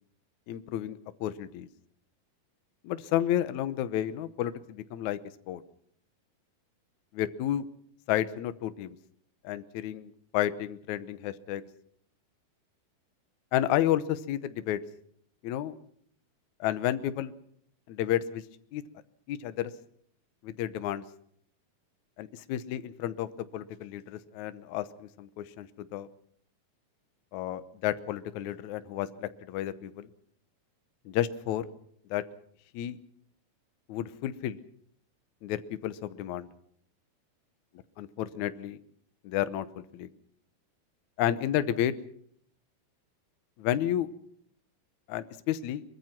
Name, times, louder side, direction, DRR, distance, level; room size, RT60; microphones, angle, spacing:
voice 1, 0.5-1.7 2.8-5.2 5.5-5.6 7.1-7.7 8.1-9.0 9.4-11.6 13.5-14.8 15.4-15.7 16.6-17.3 17.9-18.4 18.7-18.8 19.3-19.7 20.4-21.0 22.2-26.1 27.3-30.1 31.1-31.7 32.1-32.2 32.7-33.0 33.9-34.6 35.4-36.5 38.0-38.8 39.2-39.7 39.9-40.1 41.2-41.9 43.6-44.1 45.1-45.8, left 12 dB, 70° left, 12 dB, 2.0 m, -31 dB
23.0 x 22.0 x 5.9 m, 0.65 s
omnidirectional pair, 4.3 m